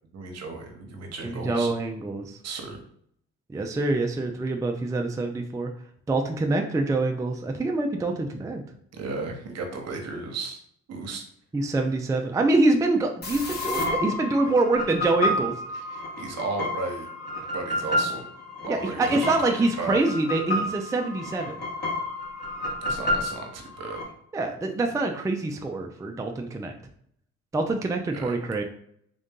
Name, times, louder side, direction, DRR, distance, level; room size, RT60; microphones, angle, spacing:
voice 1, 0.1-1.7 2.4-2.8 8.9-10.6 10.9-11.2 14.4-14.5 15.9-17.1 17.4-18.3 18.6-20.0 22.8-24.1 28.1-28.4, right 3 dB, 60° right, 3 dB, 1.0 m, -35 dB
voice 2, 1.2-2.4 3.5-5.7 6.1-8.6 11.5-15.5 18.7-21.5 24.3-26.7 27.5-28.6, right 2 dB, 10° right, 4 dB, 0.4 m, -25 dB
sound 1, 13.2-24.0, left 1 dB, 35° left, 1.3 m, -30 dB
3.7 x 2.6 x 3.6 m, 0.67 s
cardioid pair, 90°, 30 cm